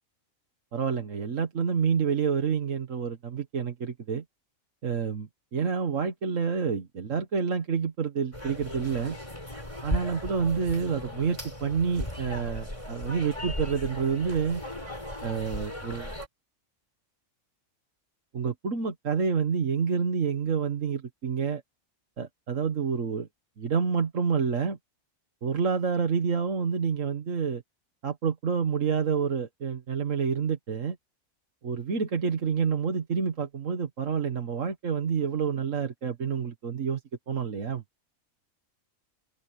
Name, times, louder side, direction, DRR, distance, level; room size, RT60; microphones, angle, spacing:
voice 1, 0.7-4.2 4.8-9.2 9.8-14.6 15.2-16.1 18.3-21.6 22.2-23.3 23.6-24.8 25.4-27.6 28.0-31.0 31.6-37.0 37.3-37.8, right 6 dB, 65° right, 1.8 m, -28 dB
sound 1, 8.3-16.3, left 1 dB, 20° left, 4.5 m, -37 dB
omnidirectional pair, 1.4 m